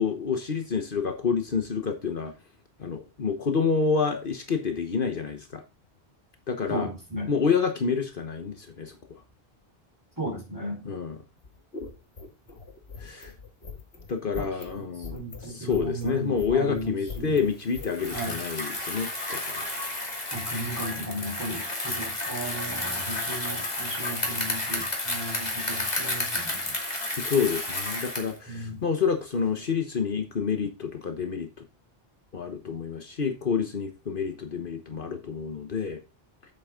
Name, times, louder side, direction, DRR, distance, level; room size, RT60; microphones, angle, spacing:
voice 1, 0.0-2.3 2.8-5.6 6.5-6.9 7.3-9.0 10.8-11.1 13.0-13.3 14.1-19.7 27.2-31.5 32.3-36.0, left 5 dB, 60° left, 6 dB, 1.3 m, -28 dB
voice 2, 6.7-7.3 10.2-10.8 14.3-14.5 14.7-17.4 18.1-18.4 20.3-26.7 28.5-28.8, right 1 dB, 20° right, -1 dB, 4.3 m, -35 dB
sound 1, 11.4-18.2, left 4 dB, 80° left, 1.9 m, -41 dB
Bicycle, 17.9-28.4, left 1 dB, 40° left, 2.6 m, -31 dB
8.1 x 8.0 x 3.7 m, 0.28 s
omnidirectional pair, 1.0 m